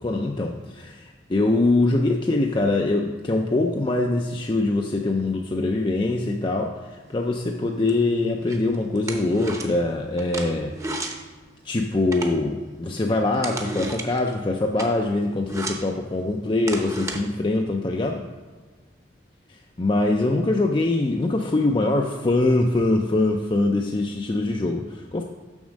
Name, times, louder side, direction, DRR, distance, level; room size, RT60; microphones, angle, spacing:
voice 1, 0.0-11.2 11.6-18.2 19.8-25.2, left 2 dB, 25° left, 2 dB, 0.5 m, -23 dB
sound 1, 7.1-17.2, right 2 dB, 15° right, 0.8 m, -36 dB
7.2 x 6.1 x 6.3 m, 1.4 s
head